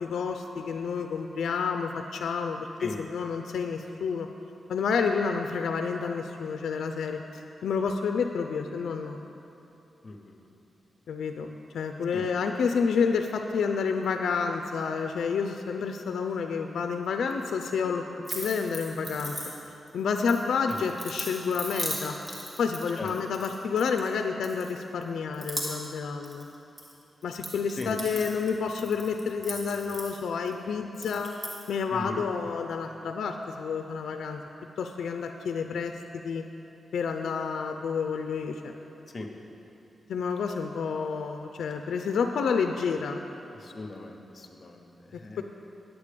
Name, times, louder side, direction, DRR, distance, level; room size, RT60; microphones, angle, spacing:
voice 1, 0.0-4.3 4.7-7.2 7.6-9.2 11.1-18.0 18.3-19.4 19.9-22.1 22.6-26.5 27.2-31.3 31.7-34.4 34.8-36.4 36.9-38.7 40.1-43.2 45.4-45.5, left 5 dB, 90° left, 5 dB, 0.4 m, -29 dB
voice 2, 10.0-10.5 12.1-12.2 20.7-20.8 23.0-23.1 27.8-27.9 31.9-32.2 39.1-39.3 43.5-45.4, left 2 dB, 40° left, 3 dB, 1.0 m, -39 dB
sound 1, 18.2-19.9 20.3-24.1 24.4-25.0 25.3-26.0 26.2-26.9 27.2-30.5 30.9-31.7, equal, 30° right, 1.8 m, -38 dB
8.8 x 8.2 x 5.1 m, 2.9 s
cardioid pair, 90°, 0 cm